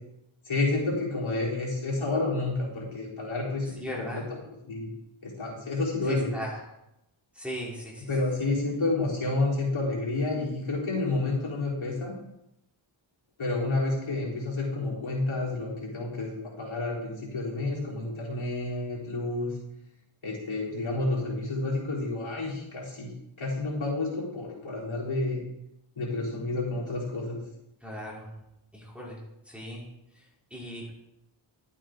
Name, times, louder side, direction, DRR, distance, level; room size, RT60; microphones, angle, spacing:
voice 1, 0.5-4.2 4.7-4.9 5.2-6.3 8.1-12.1 13.4-19.5 20.2-23.1 23.4-25.4 26.0-27.4, left 2 dB, 70° left, -5 dB, 4.0 m, -30 dB
voice 2, 3.8-4.2 6.1-6.6 7.3-8.1 27.8-28.3 28.7-29.9 30.1-30.3 30.5-31.0, equal, ahead, -6 dB, 3.6 m, -38 dB
12.0 x 8.4 x 3.8 m, 0.84 s
wide cardioid pair, 95°, 49 cm